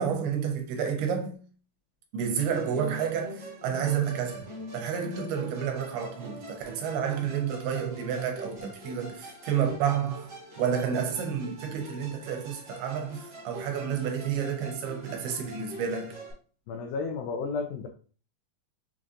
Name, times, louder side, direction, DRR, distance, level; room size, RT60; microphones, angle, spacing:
voice 1, 0.0-1.4 2.1-16.2, right 7 dB, 85° right, 2.7 m, -30 dB
Musical instrument, 2.5-16.3, right 1 dB, 50° right, 1.2 m, -44 dB
voice 2, 16.7-17.9, left 4 dB, 90° left, 2.0 m, -32 dB
6.3 x 2.5 x 2.6 m
omnidirectional pair, 4.6 m